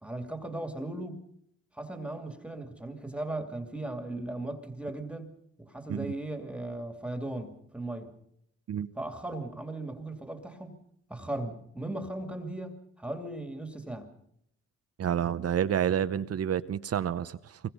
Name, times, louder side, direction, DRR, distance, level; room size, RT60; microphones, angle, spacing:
voice 1, 0.0-1.2 1.7-5.3 5.6-8.1 9.0-10.8 11.1-14.1, right 2 dB, 5° right, 2.6 m, -37 dB
voice 2, 15.0-17.6, right 9 dB, 55° right, 0.9 m, -29 dB
23.5 x 21.5 x 5.5 m
cardioid pair, 90°, 30 cm